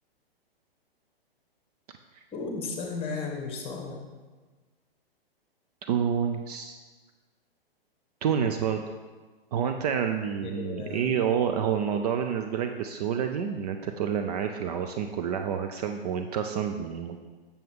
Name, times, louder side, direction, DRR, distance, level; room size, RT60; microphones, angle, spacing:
voice 1, 2.3-4.1 10.4-11.2, left 4 dB, 20° left, 1 dB, 1.5 m, -35 dB
voice 2, 5.9-6.8 8.2-8.8 9.5-17.2, right 8 dB, 40° right, 5 dB, 0.5 m, -28 dB
7.5 x 6.9 x 3.6 m, 1.3 s
hypercardioid pair, 125°, 31 cm